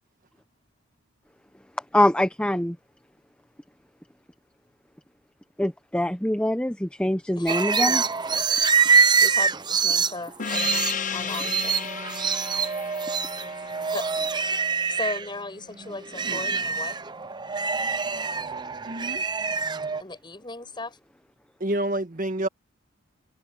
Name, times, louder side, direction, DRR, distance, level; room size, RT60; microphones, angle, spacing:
voice 1, 1.9-2.8 5.6-8.0, left 1 dB, 5° left, 0.9 m, -24 dB
voice 2, 7.4-8.1 9.2-11.8 13.9-14.2 15.0-17.0 20.0-21.0, left 2 dB, 25° left, 6.7 m, -36 dB
sound 1, 7.5-15.3 15.7-20.0, right 5 dB, 20° right, 0.8 m, -25 dB
Gong, 10.4-15.4, left 7 dB, 40° left, 0.8 m, -34 dB
voice 3, 18.9-19.2 21.6-22.5, right 1 dB, 45° right, 1.6 m, -28 dB
head